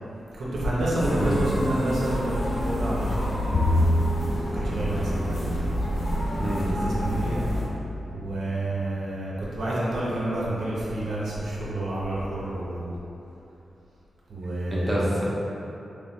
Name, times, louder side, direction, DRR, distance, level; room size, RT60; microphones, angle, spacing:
voice 1, 0.4-3.9 4.6-5.4 6.8-7.4 8.1-12.9 14.3-15.0, right 1 dB, 90° right, -7 dB, 0.9 m, -29 dB
sound 1, 1.0-7.7, equal, 60° left, 1.0 m, -28 dB
Bowed string instrument, 3.5-9.9, left 1 dB, 40° left, 0.4 m, -30 dB
voice 2, 6.4-6.7 14.7-15.2, right 1 dB, 15° right, -6 dB, 0.6 m, -27 dB
3.2 x 3.0 x 3.6 m, 2.9 s
wide cardioid pair, 145°, 0 cm